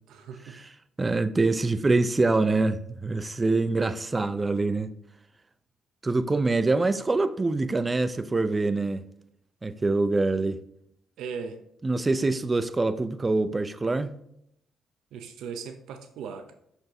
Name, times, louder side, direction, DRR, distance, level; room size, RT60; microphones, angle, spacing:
voice 1, 0.1-0.6 11.2-11.6 15.1-16.5, right 6 dB, 85° right, 0.7 m, -38 dB
voice 2, 1.0-4.9 6.0-9.1 9.6-10.6 11.8-14.2, right 3 dB, 25° right, 0.5 m, -25 dB
5.9 x 5.6 x 3.5 m
cardioid pair, 90°, 0 cm